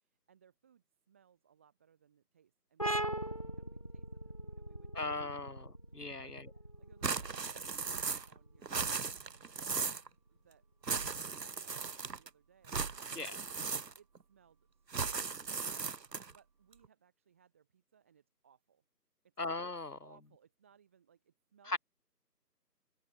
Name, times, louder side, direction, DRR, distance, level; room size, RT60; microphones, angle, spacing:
voice 1, 0.0-9.5 10.3-10.7 11.1-12.9 13.2-18.8 19.2-19.5 20.0-21.8, right 8 dB, 10° right, 2.1 m, -67 dB
sound 1, 2.8-10.1, right 1 dB, 20° left, 1.0 m, -41 dB
voice 2, 4.9-5.7 6.0-6.3 13.1-13.3 19.4-20.0 21.7-21.8, left 3 dB, 65° left, 3.0 m, -37 dB
sound 2, 7.0-8.4 8.6-10.1 10.8-12.3 12.7-14.2 14.9-16.4, right 5 dB, 75° right, 1.1 m, -37 dB
figure-of-eight pair, 165°, 50 cm